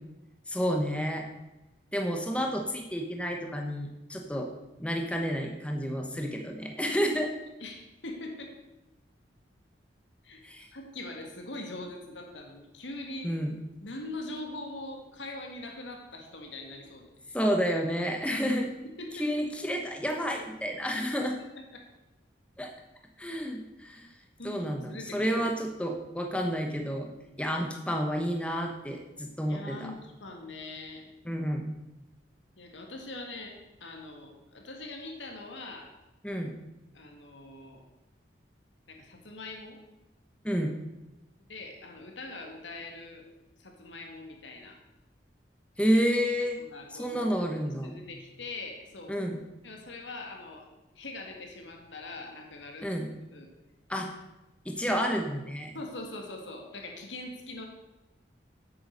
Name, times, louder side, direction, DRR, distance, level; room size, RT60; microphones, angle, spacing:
voice 1, 0.5-1.2 1.9-4.5 4.8-7.3 10.4-10.7 13.2-13.5 17.3-18.7 19.2-21.3 22.6-22.7 23.2-24.1 24.4-27.1 27.4-29.9 31.2-31.7 36.2-36.5 40.4-40.7 45.8-46.6 46.9-48.0 49.1-49.4 52.8-53.1 53.9-54.1 54.6-55.7, equal, 5° left, 2 dB, 1.0 m, -30 dB
voice 2, 7.6-8.5 10.2-10.4 10.7-13.3 13.8-17.4 19.0-19.3 21.0-21.2 21.7-21.8 24.4-25.5 29.5-31.0 32.6-35.9 36.9-37.8 38.9-39.8 41.5-43.3 43.6-44.8 46.6-49.2 49.6-50.7 51.0-53.5 55.7-57.7, left 2 dB, 85° left, 2 dB, 2.1 m, -42 dB
8.5 x 7.8 x 6.5 m, 0.99 s
head